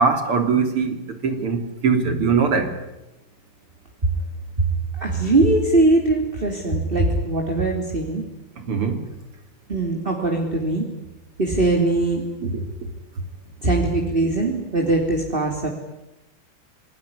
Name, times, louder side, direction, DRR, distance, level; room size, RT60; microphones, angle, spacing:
voice 1, 0.0-2.8 8.6-9.1 12.4-12.6, right 5 dB, 85° right, 8 dB, 4.1 m, -21 dB
voice 2, 5.0-8.2 9.7-10.9 11.4-12.2 13.6-15.7, right 2 dB, 25° right, 1 dB, 3.5 m, -21 dB
26.5 x 21.0 x 10.0 m, 0.96 s
omnidirectional pair, 2.4 m